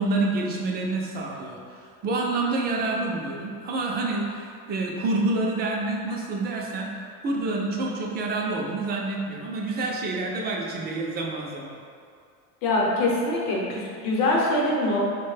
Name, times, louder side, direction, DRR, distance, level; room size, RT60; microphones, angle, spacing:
voice 1, 0.0-11.8, right 2 dB, 30° right, -1 dB, 0.3 m, -28 dB
voice 2, 12.6-15.0, left 2 dB, 60° left, -3 dB, 0.9 m, -23 dB
4.3 x 2.2 x 3.2 m, 2.3 s
cardioid pair, 150°, 36 cm